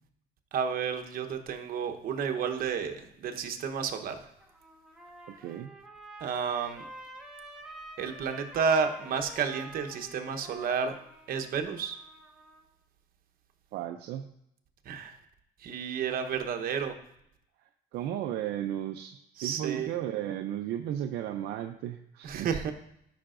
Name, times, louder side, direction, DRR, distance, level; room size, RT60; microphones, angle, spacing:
voice 1, 0.5-4.2 6.2-6.8 8.0-10.9 11.3-12.0 14.8-15.1 15.6-16.9 19.4-19.9 22.2-22.7, right 6 dB, 60° right, 5 dB, 1.0 m, -31 dB
Trumpet, 4.2-12.7, right 1 dB, 5° right, 1.2 m, -48 dB
voice 2, 5.3-5.7 13.7-14.3 17.9-22.5, right 11 dB, 80° right, 6 dB, 0.5 m, -34 dB
13.0 x 5.8 x 2.5 m, 0.77 s
cardioid pair, 110°, 17 cm